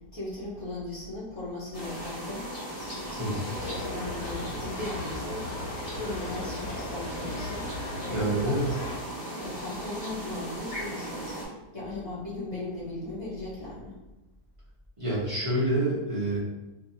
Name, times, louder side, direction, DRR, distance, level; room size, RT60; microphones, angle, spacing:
voice 1, 0.1-2.4 3.0-5.4 6.0-7.7 8.0-8.6 9.4-11.4 11.7-14.0, left 2 dB, 60° left, -8 dB, 0.3 m, -37 dB
sound 1, 1.7-11.5, right 1 dB, 20° left, 1.3 m, -37 dB
sound 2, 3.5-9.0, left 3 dB, 80° left, 1.2 m, -38 dB
voice 2, 8.1-8.7 15.0-16.4, right 1 dB, 45° right, -8 dB, 0.4 m, -27 dB
2.6 x 2.6 x 2.6 m, 1.0 s
omnidirectional pair, 1.7 m